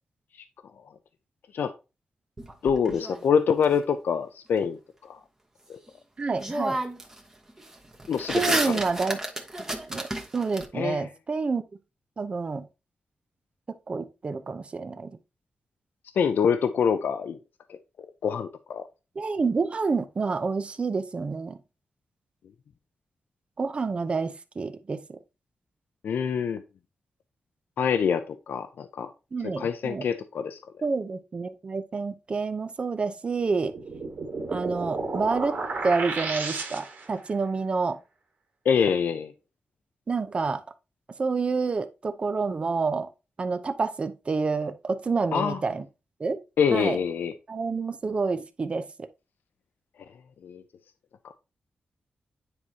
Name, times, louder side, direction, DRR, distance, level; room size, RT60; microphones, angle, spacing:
sound 1, 2.4-3.6 5.9-6.0 6.4-7.2 7.5-10.6, right 1 dB, 15° right, 1.1 m, -31 dB
voice 1, 2.6-5.2 5.7-5.8 8.1-8.8 10.7-11.1 16.2-17.4 17.7-17.8 18.2-18.9 26.0-26.6 27.8-29.1 29.6-30.6 38.6-39.3 45.3-45.6 46.6-47.3 50.4-50.6, left 7 dB, 85° left, 0.5 m, -25 dB
voice 2, 6.2-6.8 8.3-9.2 9.9-10.1 10.3-11.6 12.2-12.7 13.9-15.2 19.2-21.6 23.6-25.2 29.3-30.1 30.8-33.8 34.5-35.6 35.8-38.0 40.1-40.6 41.2-43.1 43.4-45.8 46.2-46.4 46.7-47.0 47.5-49.1, right 4 dB, 35° right, 0.7 m, -28 dB
sound 2, 33.7-37.2, right 3 dB, 70° right, 2.1 m, -32 dB
9.6 x 4.8 x 2.8 m
wide cardioid pair, 150°, 3 cm